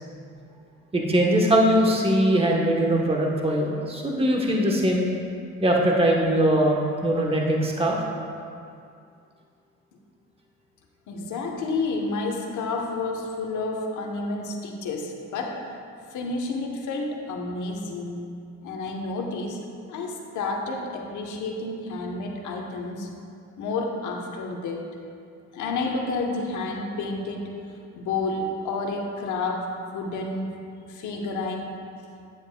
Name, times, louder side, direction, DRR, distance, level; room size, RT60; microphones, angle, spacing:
voice 1, 0.9-5.0 5.6-8.0, right 1 dB, 20° right, -1 dB, 1.1 m, -21 dB
voice 2, 11.1-15.6 16.1-18.2 18.6-19.6 19.9-23.1 23.6-24.9 25.5-27.5 28.0-30.6 30.9-31.8, left 3 dB, 75° left, 1 dB, 1.0 m, -30 dB
9.8 x 7.9 x 2.2 m, 2.4 s
cardioid pair, 90°, 30 cm